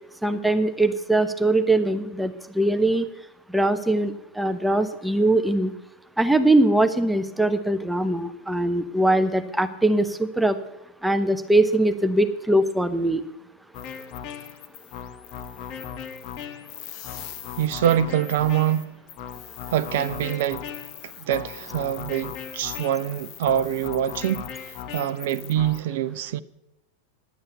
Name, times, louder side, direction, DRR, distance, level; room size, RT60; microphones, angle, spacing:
voice 1, 0.2-3.1 3.5-5.7 6.2-10.6 11.0-13.2, right 1 dB, 5° right, 0.7 m, -21 dB
sound 1, 13.7-25.8, left 8 dB, 40° left, 1.2 m, -37 dB
voice 2, 17.6-18.9 19.7-20.7 21.0-24.5 24.9-26.4, right 10 dB, 55° right, 0.5 m, -25 dB
10.5 x 8.8 x 9.3 m
figure-of-eight pair, 90°, 0 cm